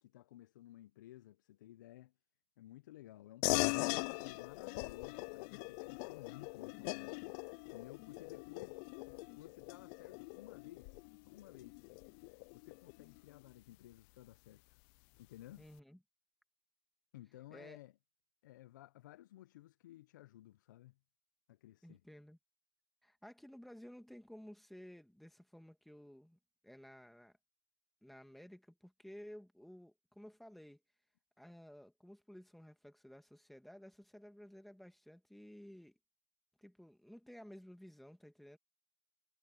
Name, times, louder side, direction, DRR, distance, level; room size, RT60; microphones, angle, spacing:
voice 1, 0.0-2.1 2.6-7.4 7.7-11.9 12.5-14.8 15.2-15.7 17.1-17.9 18.4-21.0 21.5-22.0, left 14 dB, 75° left, 0.8 m, -56 dB
sound 1, 3.4-13.3, left 31 dB, 50° left, 0.4 m, -41 dB
voice 2, 15.6-16.0 17.5-17.8 21.8-22.4 23.0-27.4 28.0-30.8 31.4-36.0 36.6-38.6, equal, ahead, 2.4 m, -55 dB
hypercardioid pair, 115°, 10 cm